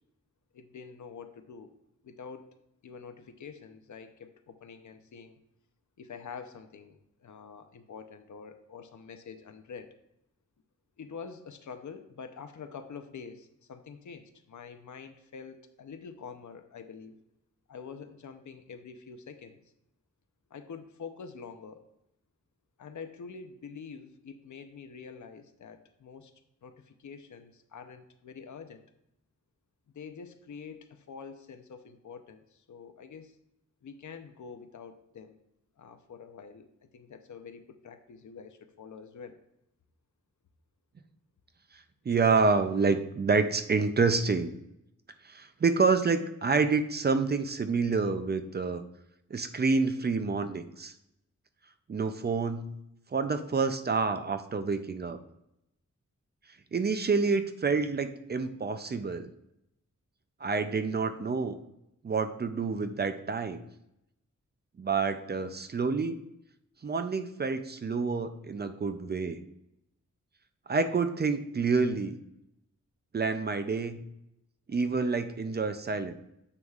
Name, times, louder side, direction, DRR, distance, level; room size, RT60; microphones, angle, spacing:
voice 1, 0.5-1.8 2.0-2.5 2.8-5.4 6.0-10.0 11.0-17.2 17.7-19.6 20.5-21.8 22.8-26.3 26.6-28.8 29.9-33.4 33.8-35.4 35.8-36.7 36.9-39.4, left 6 dB, 75° left, 8 dB, 0.7 m, -46 dB
voice 2, 42.1-44.5 45.2-48.8 49.3-50.9 51.9-52.7 53.1-55.2 56.7-59.3 60.4-61.6 62.0-63.6 64.8-66.2 66.8-69.4 70.7-72.2 73.1-74.0 74.7-76.1, right 4 dB, 35° right, 9 dB, 0.4 m, -28 dB
9.6 x 7.0 x 2.4 m, 0.82 s
wide cardioid pair, 170°, 30 cm